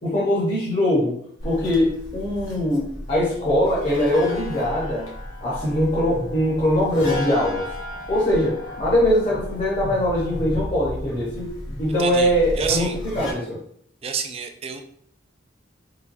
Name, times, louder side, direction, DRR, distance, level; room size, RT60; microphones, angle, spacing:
voice 1, 0.0-1.2 1.4-5.1 5.4-7.7 8.1-13.6, left 1 dB, 40° left, -6 dB, 1.0 m, -22 dB
sound 1, 1.4-13.3, left 1 dB, 90° left, 0.9 m, -34 dB
voice 2, 12.0-12.3 12.6-12.9 14.0-14.8, right 6 dB, 30° right, 6 dB, 0.3 m, -28 dB
3.4 x 3.2 x 2.6 m, 0.64 s
head